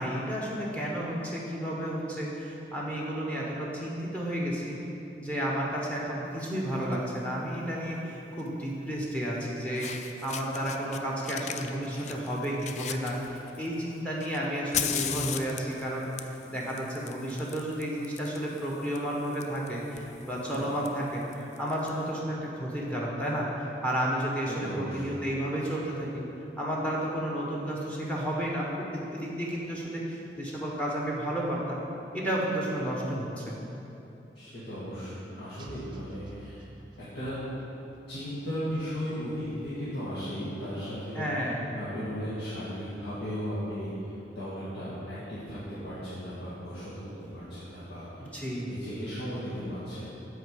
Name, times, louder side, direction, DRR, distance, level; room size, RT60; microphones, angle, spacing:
voice 1, 0.0-4.8 5.2-26.2 26.6-31.8 32.1-33.6 41.1-41.6 48.2-48.7, equal, 5° left, -4 dB, 1.1 m, -32 dB
Fire, 6.7-6.9 8.4-8.5 9.4-9.5 9.7-11.0 11.2-13.7 14.2-21.9, left 8 dB, 40° left, 0.3 m, -38 dB
voice 2, 24.5-25.2 34.3-36.7 37.1-37.4 38.1-41.2 41.7-50.0, equal, 75° left, -12 dB, 1.8 m, -36 dB
sound 1, 35.6-37.5, right 2 dB, 25° right, 0.5 m, -49 dB
7.9 x 4.6 x 6.8 m, 2.9 s
head